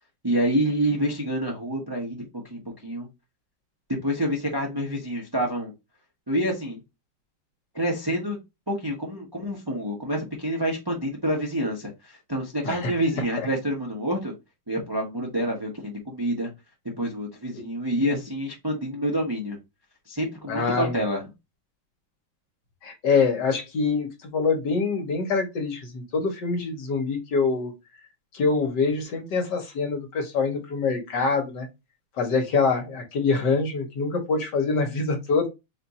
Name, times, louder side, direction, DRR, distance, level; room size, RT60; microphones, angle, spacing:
voice 1, 0.2-2.2 2.5-3.1 4.0-5.7 6.3-6.8 7.7-8.4 8.7-14.3 14.7-16.5 17.0-19.6 20.1-21.2, equal, 25° right, -1 dB, 0.4 m, -27 dB
voice 2, 20.5-21.0 22.8-27.7 28.3-31.7 32.2-35.5, left 4 dB, 60° left, 4 dB, 1.5 m, -25 dB
4.3 x 2.5 x 4.1 m, 0.23 s
omnidirectional pair, 2.3 m